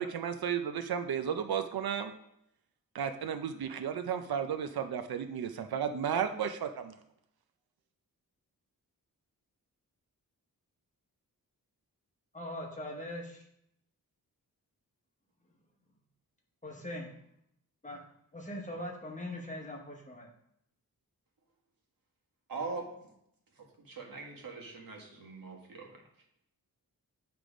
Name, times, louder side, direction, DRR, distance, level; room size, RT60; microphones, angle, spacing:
voice 1, 0.0-2.1 2.9-6.9, right 8 dB, 85° right, 8 dB, 0.6 m, -33 dB
voice 2, 12.3-13.4 16.6-17.1 17.8-18.0 18.3-20.3, left 1 dB, 20° left, 0 dB, 1.1 m, -41 dB
voice 3, 22.5-22.9 23.6-26.0, right 4 dB, 65° right, 0 dB, 1.5 m, -42 dB
9.2 x 3.4 x 5.0 m, 0.76 s
wide cardioid pair, 165°, 36 cm